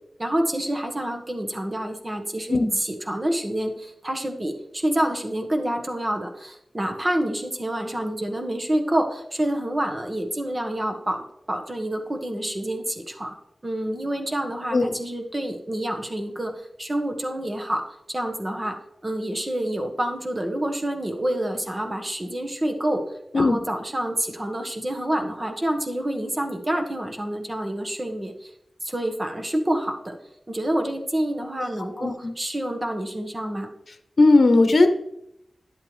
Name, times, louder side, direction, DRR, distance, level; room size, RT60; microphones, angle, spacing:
voice 1, 0.2-13.4 13.6-18.8 19.0-23.0 23.3-28.5 28.8-30.2 30.5-33.7, right 1 dB, 30° right, 4 dB, 1.4 m, -28 dB
voice 2, 32.0-32.3 34.2-34.9, left 2 dB, 65° left, 8 dB, 0.8 m, -17 dB
10.5 x 8.2 x 3.3 m, 0.79 s
wide cardioid pair, 90°, 0 cm